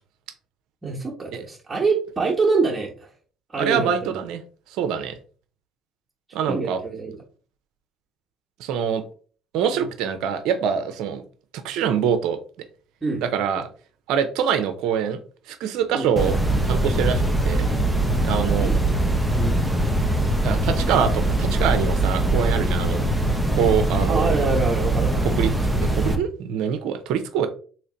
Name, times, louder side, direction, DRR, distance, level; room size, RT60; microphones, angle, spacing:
voice 1, 0.8-3.1 3.5-3.9 6.5-7.2 9.7-9.8 13.0-13.2 15.9-16.1 18.6-18.7 19.4-19.6 24.0-25.3, right 4 dB, 25° right, -3 dB, 1.1 m, -25 dB
voice 2, 3.6-4.4 4.7-5.2 6.3-6.8 8.6-9.0 9.5-11.2 11.6-12.4 13.2-13.7 14.1-15.2 15.5-16.4 16.6-17.7 18.2-18.7 20.4-23.0 23.5-24.5 25.4-27.5, right 7 dB, 75° right, 9 dB, 0.5 m, -24 dB
sound 1, 16.2-26.2, right 1 dB, ahead, 0.8 m, -22 dB
3.2 x 2.9 x 3.8 m, 0.41 s
supercardioid pair, 70°, 0 cm